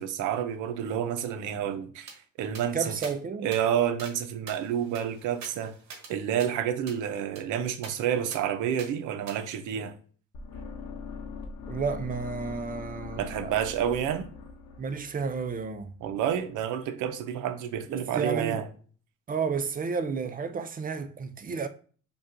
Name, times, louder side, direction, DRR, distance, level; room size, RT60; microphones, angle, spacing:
voice 1, 0.0-3.0 3.4-5.8 6.1-9.9 13.2-14.3 16.0-18.7, right 9 dB, 85° right, 0.5 m, -29 dB
sound 1, 2.1-2.2 2.5-2.7 3.0-3.2 3.5-3.6 4.0-4.2 4.5-6.1 6.4-6.5 6.9-7.0 7.4-7.5 7.8-7.9 8.3-8.4 8.8-8.9 9.3-9.4, right 4 dB, 65° right, 1.0 m, -44 dB
voice 2, 2.7-3.5 11.7-13.7 14.8-15.9 17.9-18.6 19.3-21.7, right 5 dB, 30° right, 0.4 m, -32 dB
sound 2, 10.3-16.4, left 4 dB, 80° left, 0.8 m, -42 dB
5.2 x 2.3 x 2.5 m
cardioid pair, 90°, 30 cm